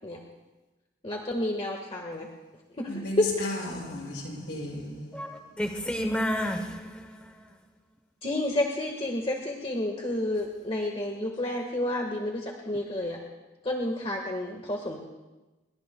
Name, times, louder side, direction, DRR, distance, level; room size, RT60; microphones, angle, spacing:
voice 1, 1.0-2.3 2.8-3.5 8.2-13.2 13.6-15.1, left 1 dB, 30° left, 1.5 m, -30 dB
voice 2, 2.9-5.2, left 1 dB, 65° left, 6.5 m, -35 dB
voice 3, 5.1-7.5, equal, 5° left, 0.8 m, -31 dB
28.0 x 22.5 x 2.3 m
head